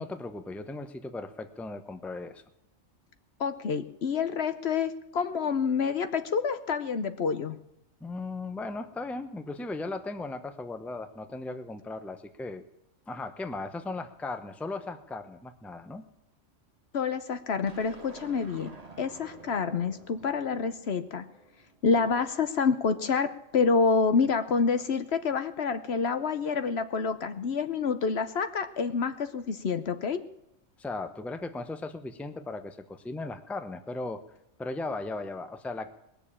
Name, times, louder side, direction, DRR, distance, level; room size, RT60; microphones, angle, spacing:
voice 1, 0.0-2.4 8.0-12.6 13.1-16.0 30.8-34.2 34.6-35.9, left 2 dB, ahead, 9 dB, 0.7 m, -37 dB
voice 2, 3.4-7.6 16.9-18.7 19.0-21.2 21.8-30.2, left 5 dB, 60° left, 11 dB, 1.0 m, -28 dB
sound 1, 17.7-22.0, right 3 dB, 30° right, 1.5 m, -50 dB
20.0 x 7.0 x 8.7 m, 0.86 s
omnidirectional pair, 1.3 m